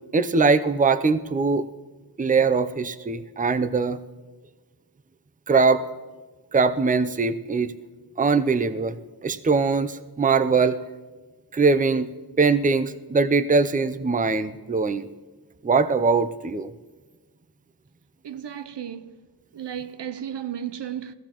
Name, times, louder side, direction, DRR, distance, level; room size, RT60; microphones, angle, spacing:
voice 1, 0.1-1.7 2.2-4.0 5.5-5.8 6.5-7.7 8.2-9.0 9.2-10.8 11.5-12.1 12.4-15.1 15.6-16.7, right 4 dB, 20° right, 0.5 m, -21 dB
voice 2, 18.2-19.1 19.5-21.1, right 9 dB, 75° right, 0.6 m, -34 dB
20.0 x 15.0 x 3.0 m
wide cardioid pair, 45°, 42 cm